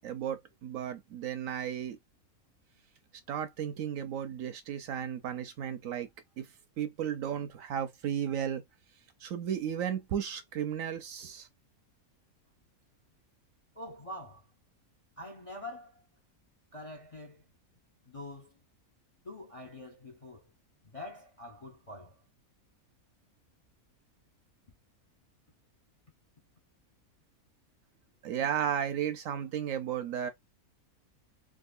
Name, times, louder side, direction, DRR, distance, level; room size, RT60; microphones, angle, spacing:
voice 1, 0.0-2.0 3.3-6.1 6.4-6.5 6.8-8.6 9.2-11.5 28.2-30.3, right 9 dB, 70° right, 0.9 m, -34 dB
voice 2, 13.8-14.4 15.2-16.0 16.7-17.4 18.1-18.6 19.2-20.5 20.8-22.2, left 1 dB, 40° left, 0.5 m, -45 dB
3.7 x 2.4 x 2.4 m
omnidirectional pair, 1.6 m